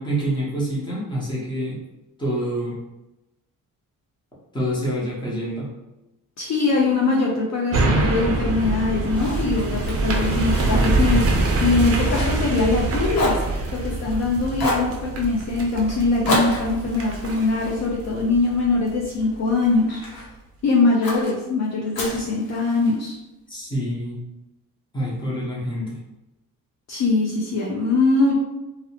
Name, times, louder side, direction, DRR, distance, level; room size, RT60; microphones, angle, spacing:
voice 1, 0.0-1.8 2.2-2.8 4.5-5.7 23.5-24.2 24.9-26.0, equal, 15° left, -6 dB, 0.8 m, -27 dB
voice 2, 6.4-13.4 13.7-20.0 20.6-23.2 26.9-28.4, left 3 dB, 50° left, -3 dB, 0.5 m, -22 dB
sound 1, 7.7-19.2 19.6-19.7, right 2 dB, 45° right, 0.5 m, -24 dB
Fire, 9.1-12.8 13.1-14.2 14.6-14.9 16.2-18.7 19.2-20.3 21.0-21.3 21.9-23.0, left 1 dB, 85° left, 0.8 m, -30 dB
2.7 x 2.0 x 2.7 m, 0.98 s
cardioid pair, 140°, 34 cm